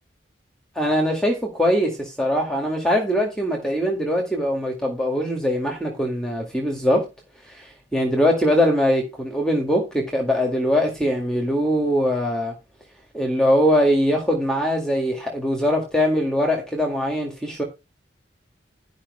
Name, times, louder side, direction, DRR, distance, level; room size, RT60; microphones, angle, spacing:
voice 1, 0.8-7.1 7.5-12.5 13.1-17.6, equal, 5° left, 1.9 m, -22 dB
12.0 x 5.3 x 4.9 m
head